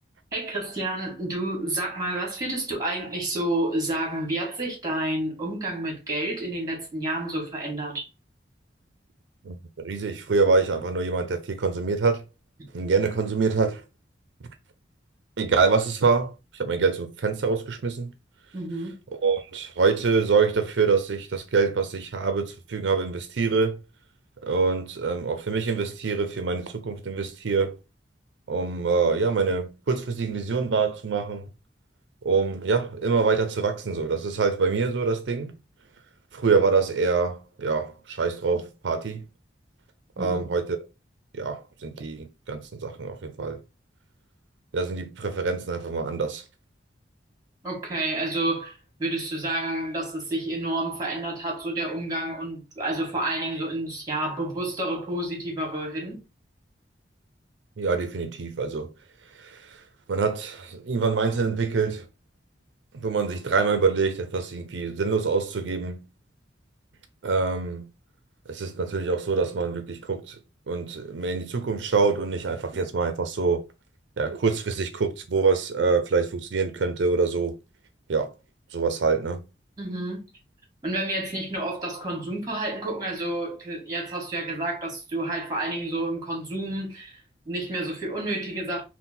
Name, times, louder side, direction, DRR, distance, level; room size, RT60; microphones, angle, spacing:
voice 1, 0.3-8.1 18.5-18.9 40.2-40.5 47.6-56.2 79.8-80.2 80.8-87.2 87.4-88.8, right 1 dB, 20° right, 1.7 m, -30 dB
voice 2, 9.4-12.2 12.7-13.8 15.4-18.1 19.2-23.8 24.4-27.8 28.5-31.5 32.2-35.5 36.3-39.2 40.2-40.8 41.3-43.6 44.7-46.4 57.8-58.9 59.3-62.1 62.9-66.0 67.2-67.9 68.5-70.4 70.7-73.6 74.2-77.5 78.1-78.3 78.7-79.4, right 4 dB, 85° right, 0.5 m, -25 dB
3.8 x 2.2 x 4.1 m
head